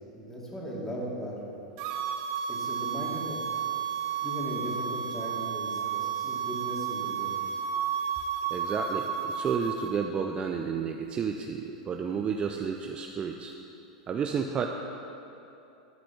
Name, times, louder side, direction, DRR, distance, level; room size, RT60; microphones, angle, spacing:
voice 1, 0.1-1.5 2.5-3.4 4.2-7.4, equal, 10° left, -4 dB, 2.4 m, -37 dB
sound 1, 1.8-9.9, right 7 dB, 50° right, 0.8 m, -32 dB
voice 2, 8.5-13.5 14.1-14.7, right 6 dB, 25° right, 4 dB, 0.5 m, -31 dB
12.5 x 5.1 x 5.7 m, 2.8 s
hypercardioid pair, 115°, 4 cm